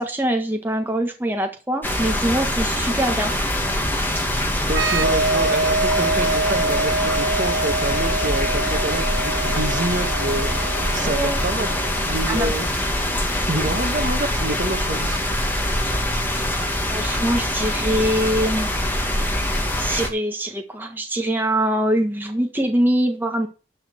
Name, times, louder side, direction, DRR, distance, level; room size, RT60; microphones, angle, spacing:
voice 1, 0.0-3.3 11.0-11.4 12.3-12.5 16.3-16.4 16.9-18.8 19.7-23.5, right 1 dB, 10° right, 1.5 m, -23 dB
sound 1, 1.8-20.1, left 1 dB, 10° left, 2.1 m, -23 dB
voice 2, 4.7-12.7 13.5-15.2, right 2 dB, 45° right, 1.7 m, -28 dB
sound 2, 4.7-12.2, right 3 dB, 75° right, 1.2 m, -25 dB
12.0 x 4.4 x 7.0 m
head